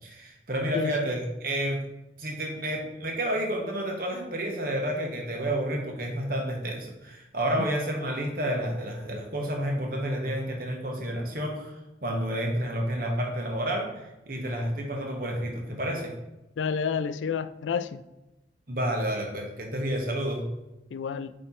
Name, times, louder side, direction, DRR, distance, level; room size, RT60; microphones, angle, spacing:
voice 1, 0.0-1.8 2.2-11.8 12.0-16.1 18.7-20.5, right 1 dB, 50° right, 1.3 m, -30 dB
voice 2, 0.7-1.1 7.6-7.7 16.6-18.0 20.9-21.3, left 6 dB, 80° left, 0.3 m, -30 dB
8.6 x 3.3 x 4.2 m
head